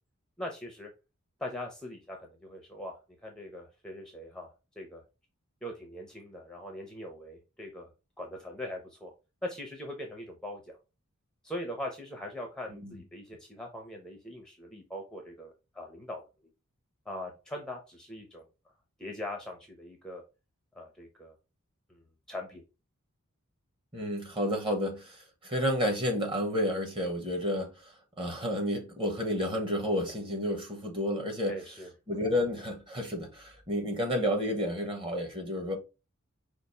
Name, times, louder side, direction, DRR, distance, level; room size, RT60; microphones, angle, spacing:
voice 1, 0.4-0.9 1.4-2.9 3.2-4.5 4.8-5.0 5.6-7.9 8.2-9.1 9.4-10.8 11.4-16.2 17.1-18.5 19.0-20.2 20.7-21.3 21.9-22.6 31.5-31.9, left 1 dB, 5° left, 0.7 m, -41 dB
voice 2, 23.9-27.9 28.2-31.6 32.1-35.8, equal, 25° right, 1.2 m, -31 dB
5.1 x 2.5 x 4.1 m
head